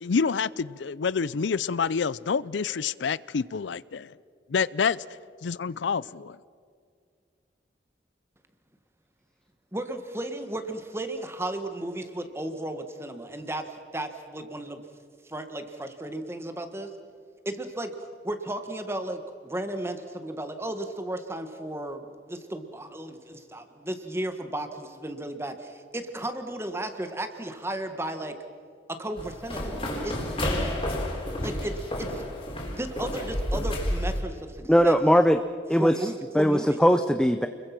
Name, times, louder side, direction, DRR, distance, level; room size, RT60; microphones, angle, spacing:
voice 1, 0.0-4.1 4.5-5.0 5.4-6.4, left 5 dB, 90° left, 20 dB, 0.5 m, -27 dB
voice 2, 9.7-14.8 15.2-16.9 17.4-28.4 28.9-30.3 31.4-32.2 32.7-35.0 35.8-36.8, right 1 dB, 15° right, 7 dB, 1.6 m, -34 dB
sound 1, 29.2-34.2, left 1 dB, 30° left, 4.5 m, -30 dB
voice 3, 34.7-35.4 35.7-35.9 36.3-37.5, equal, 5° left, 8 dB, 0.6 m, -20 dB
30.0 x 22.0 x 6.1 m, 2.2 s
head